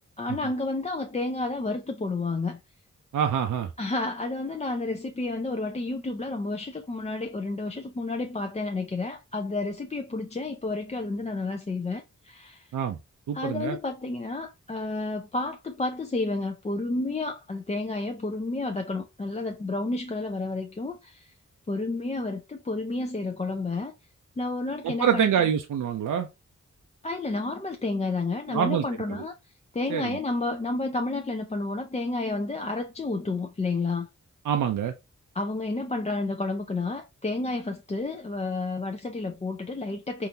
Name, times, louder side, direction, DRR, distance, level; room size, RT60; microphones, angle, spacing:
voice 1, 0.0-2.6 3.8-12.8 13.3-21.3 21.7-23.9 24.4-25.5 27.0-29.3 29.7-34.1 35.3-40.3, left 3 dB, 20° left, 0.4 m, -31 dB
voice 2, 3.1-3.7 12.7-13.0 13.3-13.8 24.8-26.3 28.5-28.8 29.9-30.2 34.5-34.9, right 8 dB, 80° right, 0.5 m, -25 dB
3.7 x 2.5 x 2.7 m
cardioid pair, 65°, 30 cm